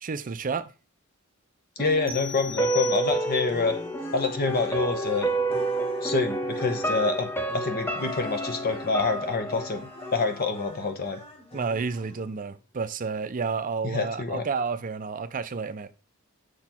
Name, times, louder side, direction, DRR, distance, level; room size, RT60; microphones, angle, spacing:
voice 1, 0.0-0.7 11.5-15.9, right 5 dB, 40° right, 0.5 m, -30 dB
voice 2, 1.8-3.7 4.1-5.3 6.0-11.2 13.8-14.5, left 4 dB, 45° left, 1.1 m, -27 dB
sound 1, 1.8-10.8 11.1-11.2, right 2 dB, 10° left, 0.7 m, -30 dB
sound 2, 2.1-3.6, left 8 dB, 10° right, 1.5 m, -38 dB
sound 3, 3.2-12.4, left 2 dB, 25° left, 1.3 m, -44 dB
6.6 x 4.1 x 4.4 m
head